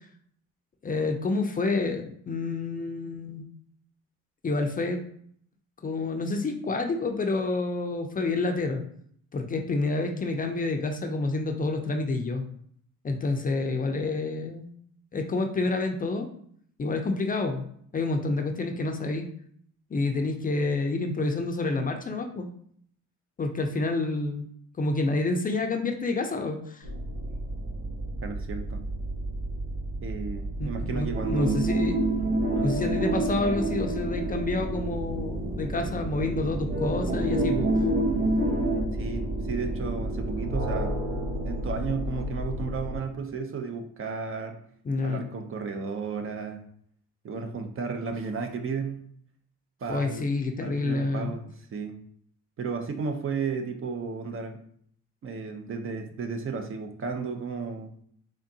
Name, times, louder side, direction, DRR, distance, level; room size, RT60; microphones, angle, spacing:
voice 1, 0.8-3.4 4.4-5.0 5.8-8.8 9.3-12.4 13.0-14.7 15.1-16.3 16.8-17.6 17.9-19.3 19.9-22.5 23.4-24.4 24.8-26.9 30.6-32.0 32.6-37.7 44.9-45.3 49.9-51.4, left 3 dB, 30° left, 4 dB, 0.5 m, -28 dB
sound 1, 26.8-43.0, right 1 dB, 90° right, 1.2 m, -33 dB
voice 2, 28.2-28.8 30.0-31.6 32.5-32.8 38.9-41.0 41.4-44.6 45.0-46.6 47.2-49.0 49.8-50.3 50.6-52.0 52.6-54.6 55.2-57.9, right 5 dB, 45° right, 5 dB, 0.6 m, -34 dB
sound 2, 31.1-35.5 35.9-36.0 36.7-38.8, right 1 dB, 30° right, 1.0 m, -27 dB
3.6 x 3.5 x 2.7 m, 0.64 s
cardioid pair, 90°, 30 cm